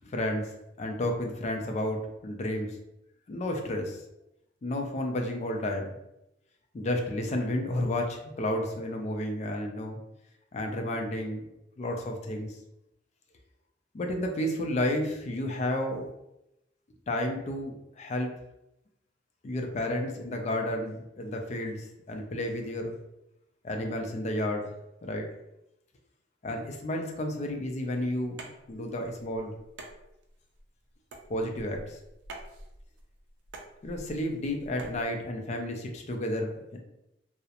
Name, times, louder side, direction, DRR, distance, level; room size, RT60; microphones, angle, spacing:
voice 1, 0.0-0.5 0.8-2.8 3.3-4.0 4.6-5.9 6.7-10.0 10.5-11.4 11.8-12.5 13.9-16.1 17.1-18.3 19.4-23.0 23.6-24.7 25.0-25.3 26.4-29.5 31.3-32.0 33.8-36.8, left 1 dB, 40° left, 3 dB, 0.4 m, -31 dB
sound 1, 28.2-35.0, right 2 dB, 75° right, 0.4 m, -48 dB
2.4 x 2.0 x 2.8 m, 0.86 s
head